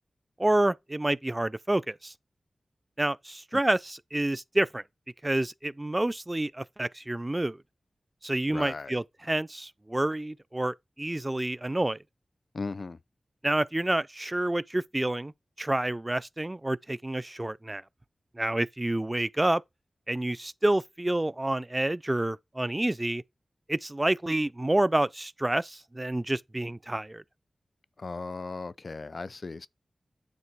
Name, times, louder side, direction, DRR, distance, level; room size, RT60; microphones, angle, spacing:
voice 1, 0.4-2.1 3.0-4.8 5.2-7.6 8.2-12.0 13.4-15.3 15.6-17.8 18.4-19.6 20.1-23.2 23.7-27.2, right 1 dB, 20° right, 0.3 m, -28 dB
voice 2, 8.5-9.0 12.5-13.0 28.0-29.7, left 3 dB, 50° left, 0.4 m, -37 dB
9.4 x 3.3 x 4.5 m
wide cardioid pair, 105°, 0 cm